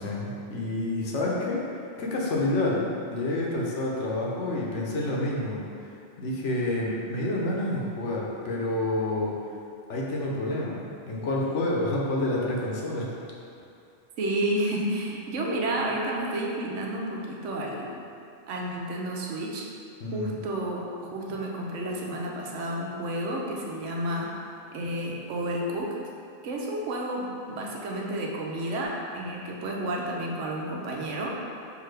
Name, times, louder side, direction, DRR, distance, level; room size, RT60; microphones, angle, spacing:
voice 1, 0.0-1.6 2.0-5.6 6.2-9.4 9.9-13.1 20.0-20.4, left 1 dB, 75° left, -3 dB, 1.1 m, -28 dB
voice 2, 14.2-18.0 18.5-19.7 20.1-24.3 24.7-25.9 26.4-31.4, right 1 dB, 80° right, -1 dB, 1.0 m, -31 dB
6.0 x 2.7 x 3.2 m, 2.5 s
omnidirectional pair, 1.2 m